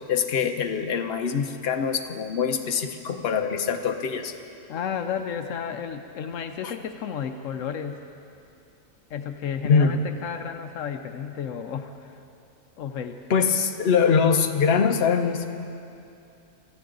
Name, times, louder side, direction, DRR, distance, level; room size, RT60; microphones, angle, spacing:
voice 1, 0.1-4.3 6.6-6.7 9.6-10.0 13.3-15.5, left 6 dB, 55° left, 5 dB, 1.0 m, -23 dB
voice 2, 4.7-8.0 9.1-12.2 12.8-13.3, left 7 dB, 80° left, 7 dB, 1.0 m, -32 dB
24.0 x 14.0 x 3.9 m, 2.6 s
omnidirectional pair, 1.4 m